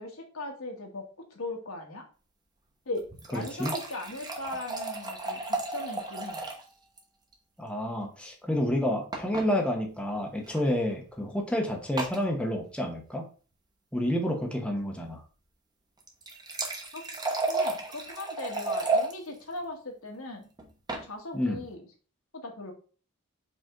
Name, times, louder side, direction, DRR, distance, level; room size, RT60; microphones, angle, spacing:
voice 1, 0.0-2.1 2.8-3.0 3.3-6.4 16.9-17.1 17.5-20.5 20.9-21.8 22.3-22.7, left 2 dB, 70° left, 2 dB, 1.5 m, -39 dB
sound 1, 3.0-6.7 7.0-7.1 7.3-7.4 9.1-9.5 10.4-10.6 12.0-12.2 16.0-19.1 20.6-21.1, right 3 dB, 20° right, 1.1 m, -32 dB
voice 2, 3.3-3.7 7.6-13.3 13.9-15.2 21.3-21.6, left 1 dB, 5° left, 1 dB, 0.9 m, -29 dB
5.2 x 4.9 x 3.8 m, 0.37 s
head